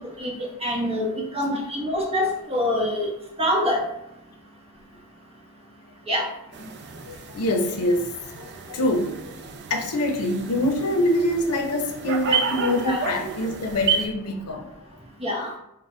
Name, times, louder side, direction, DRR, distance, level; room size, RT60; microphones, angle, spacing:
voice 1, 0.6-3.1 3.4-3.8 6.1-6.2 12.8-13.0 15.2-15.5, left 1 dB, 25° right, -3 dB, 0.9 m, -25 dB
sound 1, 6.5-14.1, right 6 dB, 50° right, 0.4 m, -31 dB
voice 2, 6.9-14.7, left 1 dB, 80° left, 4 dB, 0.6 m, -25 dB
4.1 x 2.1 x 3.7 m, 0.82 s
head